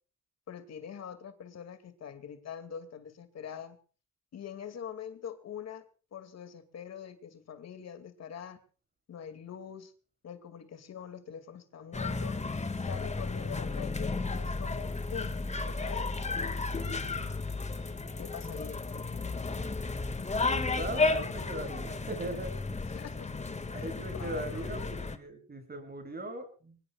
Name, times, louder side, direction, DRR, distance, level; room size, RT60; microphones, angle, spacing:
voice 1, 0.5-3.8 4.3-5.8 6.1-8.6 9.1-9.9 10.2-12.4 12.7-16.6 18.2-18.8 22.9-23.3 23.7-24.7, left 8 dB, 60° left, 9 dB, 2.5 m, -44 dB
sound 1, 11.9-25.2, left 3 dB, 20° left, 2.0 m, -33 dB
voice 2, 20.4-22.9 23.7-26.9, right 1 dB, 30° right, 7 dB, 7.6 m, -39 dB
24.0 x 21.5 x 2.4 m, 0.39 s
cardioid pair, 90°, 30 cm